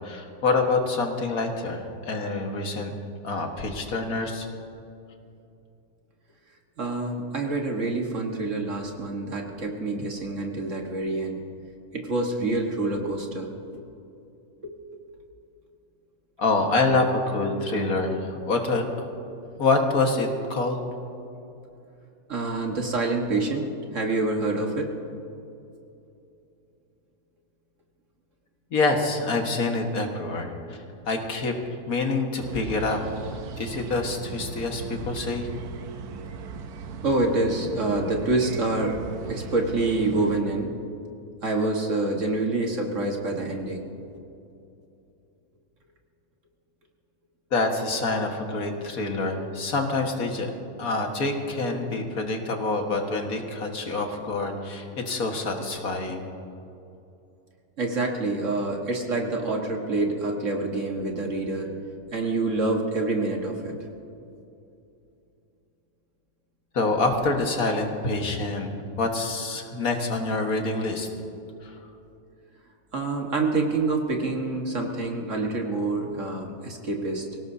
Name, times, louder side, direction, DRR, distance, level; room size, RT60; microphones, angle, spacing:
voice 1, 0.0-2.9 3.2-4.5 16.4-19.1 19.6-20.8 28.7-31.5 31.9-33.0 33.6-35.5 47.5-50.5 50.8-56.2 66.7-68.7 69.0-71.1 71.6-71.7, left 3 dB, 70° left, 3 dB, 2.1 m, -26 dB
voice 2, 6.8-11.4 11.9-13.5 14.6-15.0 22.3-24.9 37.0-39.0 39.3-40.7 41.4-43.8 57.8-61.7 62.1-63.7 72.9-77.3, right 2 dB, 55° right, 1 dB, 1.9 m, -27 dB
sound 1, 32.4-40.4, right 4 dB, 85° right, 1.4 m, -38 dB
25.0 x 17.5 x 2.8 m, 2.7 s
omnidirectional pair, 1.6 m